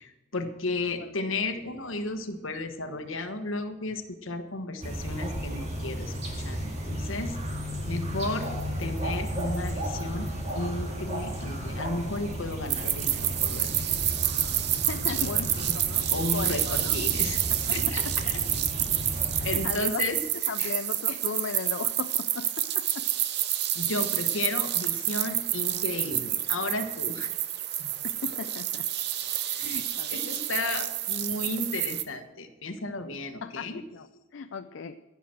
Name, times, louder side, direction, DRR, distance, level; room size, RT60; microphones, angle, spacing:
voice 1, 0.0-7.4 7.8-8.5 8.8-10.3 10.5-13.7 14.1-14.2 15.1-15.8 16.1-17.4 17.7-18.3 19.1-20.7 21.1-21.2 23.7-27.3 27.8-27.9 29.2-33.8, left 2 dB, 80° left, 6 dB, 1.3 m, -34 dB
sound 1, 4.8-19.7, equal, 30° right, 2.0 m, -34 dB
sound 2, 12.7-32.0, right 12 dB, 55° right, 0.7 m, -29 dB
voice 2, 14.9-17.0 17.5-17.8 18.0-18.2 19.4-20.0 20.5-23.1 28.0-28.9 29.6-30.2 33.4-34.1 34.3-35.0, left 5 dB, 65° left, 10 dB, 0.4 m, -37 dB
15.0 x 5.9 x 7.7 m, 1.2 s
head